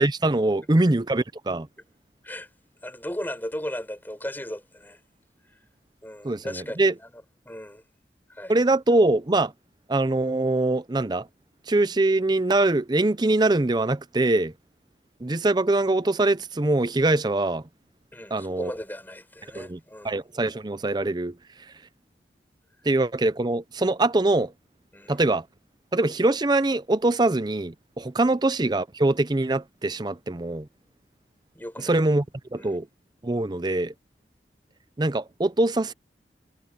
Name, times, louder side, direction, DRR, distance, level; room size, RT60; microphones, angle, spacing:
voice 1, 0.0-1.7 6.2-6.9 8.5-9.5 9.9-11.3 11.7-14.5 15.2-17.7 18.3-18.7 19.5-19.8 20.0-21.7 22.8-24.5 25.1-25.5 25.9-30.7 31.8-32.2 32.5-32.9 33.2-33.9 35.0-35.9, right 2 dB, 25° right, 0.6 m, -23 dB
voice 2, 2.8-5.0 6.0-7.8 8.3-8.5 18.1-20.1 24.9-25.2 28.2-28.3 31.5-31.9 32.6-32.8, left 1 dB, 10° left, 6.8 m, -36 dB
head